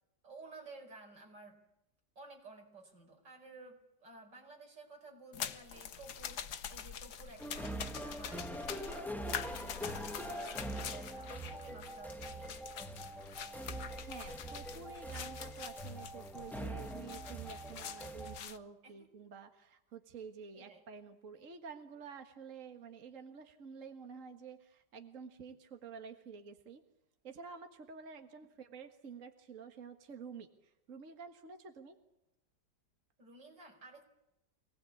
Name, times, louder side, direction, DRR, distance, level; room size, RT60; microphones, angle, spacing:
voice 1, 0.2-1.6 2.2-12.7 18.8-18.9 20.5-20.8 33.2-34.0, right 3 dB, 85° right, 2 dB, 5.5 m, -54 dB
sound 1, 5.3-18.6, left 8 dB, 65° left, 1.6 m, -45 dB
sound 2, 7.4-18.4, right 1 dB, ahead, 1.2 m, -43 dB
voice 2, 14.0-26.8 27.2-32.0, right 5 dB, 50° right, 5 dB, 1.9 m, -50 dB
26.0 x 19.0 x 8.5 m, 0.90 s
omnidirectional pair, 1.9 m